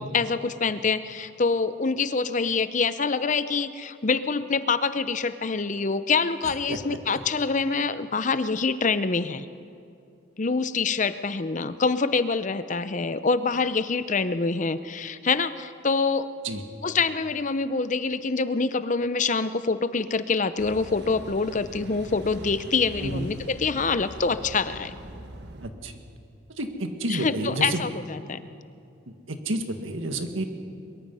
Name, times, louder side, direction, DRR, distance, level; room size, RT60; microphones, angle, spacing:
voice 1, 0.0-9.5 10.4-16.3 16.8-25.0 27.1-28.4, left 4 dB, 40° left, 13 dB, 0.6 m, -25 dB
Car passing by / Idling / Accelerating revving vroom, 20.6-25.7, right 1 dB, 55° right, 1.5 m, -42 dB
voice 2, 25.6-25.9 26.6-27.8 29.1-30.4, right 1 dB, 80° right, 6 dB, 1.9 m, -30 dB
22.5 x 22.5 x 5.6 m, 2.5 s
head